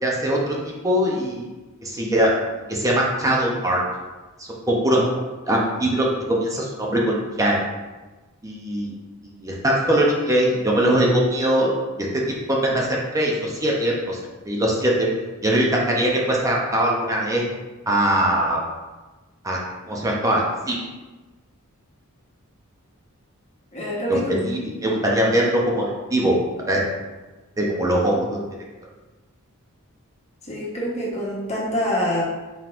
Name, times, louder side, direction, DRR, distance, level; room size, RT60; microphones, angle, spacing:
voice 1, 0.0-1.5 1.8-2.3 2.7-3.8 4.4-5.0 5.5-7.7 8.4-8.9 9.2-11.7 12.0-12.2 12.5-14.2 14.5-15.1 15.4-17.4 17.9-18.6 19.4-19.6 19.9-20.8 24.1-26.4 26.7-26.8 27.6-28.4, right 1 dB, 15° right, -3 dB, 0.6 m, -21 dB
voice 2, 23.7-24.4 30.5-32.2, equal, 30° left, -5 dB, 1.1 m, -25 dB
4.3 x 3.8 x 2.5 m, 1.2 s
head